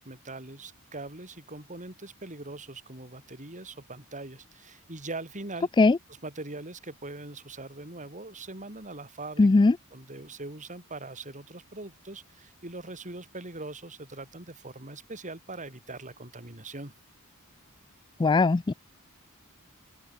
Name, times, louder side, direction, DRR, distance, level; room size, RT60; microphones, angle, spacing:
voice 1, 0.0-5.7 6.2-9.5 9.9-16.9, right 2 dB, 35° right, 4.8 m, -41 dB
voice 2, 9.4-9.8 18.2-18.7, left 3 dB, 20° left, 0.3 m, -19 dB
open air
head